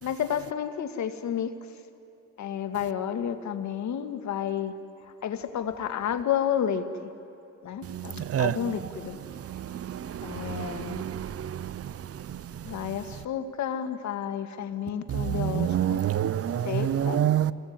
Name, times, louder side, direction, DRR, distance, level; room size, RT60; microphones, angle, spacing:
voice 1, 0.0-1.5 2.4-4.7 5.0-7.1 7.6-9.2 10.2-11.0 12.6-16.1 16.6-17.2, left 9 dB, 70° left, 1.9 m, -31 dB
voice 2, 9.8-11.7 15.1-17.5, right 10 dB, 50° right, 0.8 m, -27 dB
28.5 x 21.0 x 9.5 m
cardioid pair, 90°, 30 cm